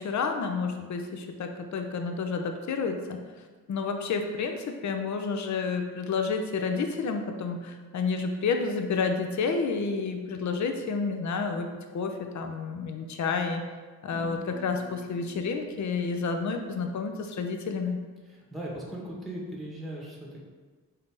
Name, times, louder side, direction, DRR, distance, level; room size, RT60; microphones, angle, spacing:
voice 1, 0.0-3.2 3.7-11.7 11.9-13.6 14.0-18.0, left 4 dB, 45° left, 5 dB, 0.6 m, -30 dB
sound 1, 14.1-18.0, left 1 dB, 85° left, 1.4 m, -49 dB
voice 2, 18.2-20.4, right 1 dB, ahead, -4 dB, 1.1 m, -38 dB
3.8 x 2.8 x 3.6 m, 1.4 s
supercardioid pair, 50°, 40 cm